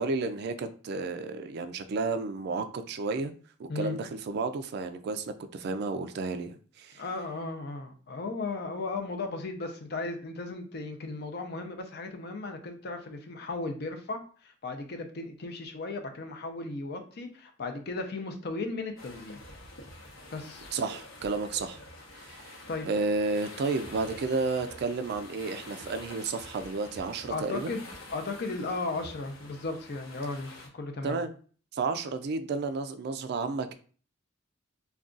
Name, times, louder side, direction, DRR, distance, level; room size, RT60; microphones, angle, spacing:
voice 1, 0.0-3.3 3.6-5.3 5.5-7.0 20.7-21.8 22.2-22.5 22.9-27.8 31.0-31.3 31.7-33.7, right 3 dB, 55° right, 0.3 m, -32 dB
voice 2, 6.9-19.4 20.3-20.7 22.7-22.9 27.3-31.2, left 3 dB, 50° left, 0.5 m, -36 dB
sound 1, 19.0-30.7, left 1 dB, 85° left, 0.9 m, -47 dB
2.4 x 2.3 x 3.7 m
head